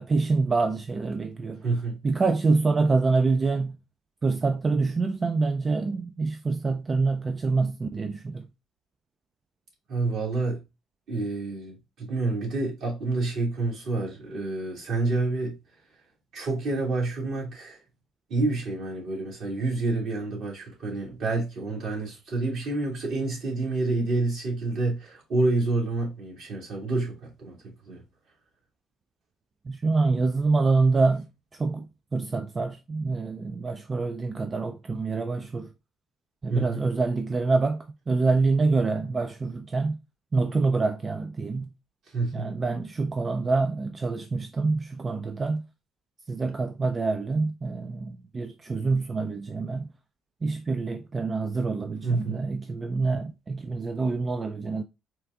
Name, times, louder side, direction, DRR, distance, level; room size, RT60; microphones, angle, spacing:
voice 1, 0.0-1.6 2.0-3.8 4.2-8.5 29.7-31.3 31.6-31.8 32.1-35.7 36.4-40.0 40.3-41.7 42.3-45.6 46.3-49.9 50.4-54.8, right 3 dB, 35° right, 0.4 m, -26 dB
voice 2, 1.6-2.0 9.9-10.6 11.1-15.5 16.3-17.8 18.3-28.0 36.5-36.9 42.1-42.5 52.0-52.4, right 3 dB, 65° right, 2.2 m, -28 dB
4.5 x 2.5 x 3.5 m
hypercardioid pair, 55°, 0 cm